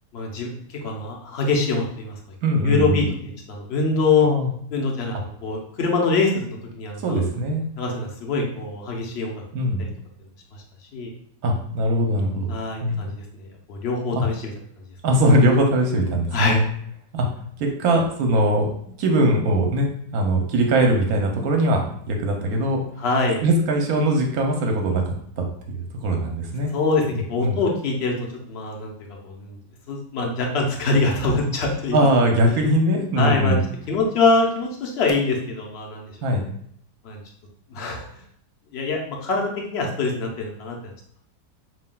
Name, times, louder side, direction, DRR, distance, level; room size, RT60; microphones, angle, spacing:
voice 1, 0.1-2.2 2.6-4.3 4.7-7.2 7.8-9.4 9.8-9.9 10.5-10.6 10.9-11.1 12.5-14.5 16.3-16.6 23.0-23.4 26.7-27.0 27.3-29.6 29.9-32.1 33.2-33.6 33.9-36.1 37.0-37.2 37.7-38.2 38.7-40.9, left 3 dB, 55° left, 0 dB, 0.8 m, -24 dB
voice 2, 2.4-3.0 4.2-4.5 7.0-7.6 9.5-9.8 11.4-12.5 12.8-13.1 14.1-14.2 15.0-16.7 17.1-17.3 17.6-18.7 19.0-19.9 20.1-22.8 23.4-25.4 26.0-26.7 27.4-27.6 31.9-33.6 36.2-36.4, right 1 dB, 70° right, 2 dB, 1.1 m, -21 dB
5.4 x 2.8 x 2.2 m, 0.66 s
omnidirectional pair, 1.8 m